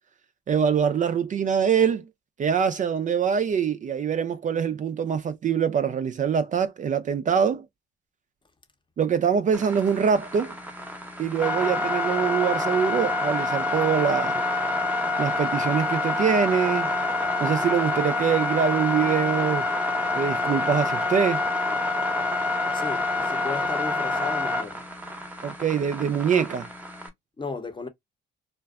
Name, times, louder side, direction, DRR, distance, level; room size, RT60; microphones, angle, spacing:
voice 1, 0.5-2.1 2.4-7.7 9.0-10.5 11.2-14.4 15.2-16.9 17.4-19.7 20.2-21.4 25.4-26.7, right 7 dB, 40° right, 0.4 m, -24 dB
sound 1, 9.5-27.1, left 2 dB, 10° right, 0.7 m, -27 dB
voice 2, 22.7-25.1 27.4-27.9, left 4 dB, 25° left, 0.7 m, -35 dB
2.4 x 2.2 x 2.3 m
cardioid pair, 90°, 20 cm